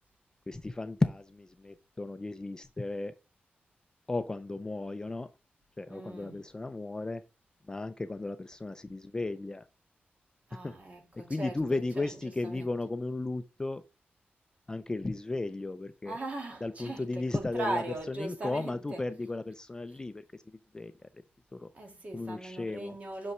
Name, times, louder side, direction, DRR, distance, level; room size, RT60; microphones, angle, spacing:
voice 1, 0.5-3.1 4.1-5.3 5.8-7.2 7.7-9.7 10.6-10.8 11.2-13.8 14.7-16.2 16.6-20.2 20.7-21.1 21.5-21.7 22.1-23.0, left 2 dB, 20° left, 0.3 m, -35 dB
voice 2, 5.9-6.4 10.5-12.7 16.0-19.1 21.7-23.3, right 2 dB, 40° right, 1.6 m, -39 dB
5.9 x 5.3 x 3.2 m
wide cardioid pair, 160°, 4 cm